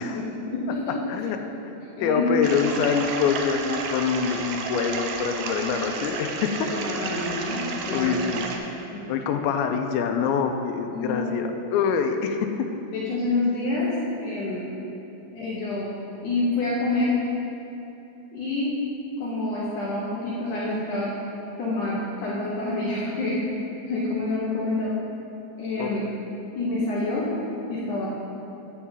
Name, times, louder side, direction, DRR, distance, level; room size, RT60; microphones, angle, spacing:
voice 1, 0.0-1.0 2.0-2.5 6.7-7.6 7.9-8.3 8.9-9.0 10.9-11.5 12.9-13.9 14.2-14.7 15.3-15.9 16.2-17.1 18.3-18.7 19.2-21.1 21.6-23.4 23.9-24.9 25.6-26.0 26.6-27.3 27.7-28.1, left 2 dB, 70° left, -7 dB, 1.9 m, -27 dB
voice 2, 1.7-6.7 7.9-8.5 9.1-12.7 25.8-25.9, left 6 dB, 90° left, 5 dB, 2.9 m, -25 dB
sound 1, 2.4-8.6, right 4 dB, 75° right, 2.4 m, -32 dB
10.0 x 4.6 x 7.3 m, 2.9 s
omnidirectional pair, 5.1 m